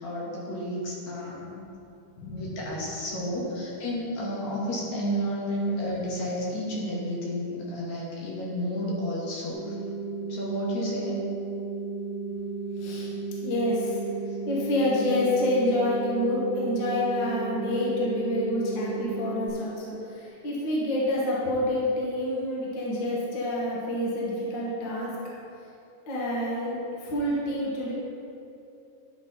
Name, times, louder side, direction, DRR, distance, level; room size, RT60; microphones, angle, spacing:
voice 1, 0.0-1.5 2.3-9.7 10.3-11.2 14.3-14.4, equal, 65° left, -5 dB, 2.6 m, -31 dB
voice 2, 1.4-1.7 2.2-2.5 12.8-13.1 13.4-14.0 14.5-25.1 26.1-26.7 27.0-27.9, left 1 dB, 45° left, -5 dB, 1.6 m, -28 dB
sound 1, 9.5-19.5, right 4 dB, 20° right, 1.8 m, -34 dB
11.0 x 6.0 x 3.9 m, 2.7 s
omnidirectional pair, 3.8 m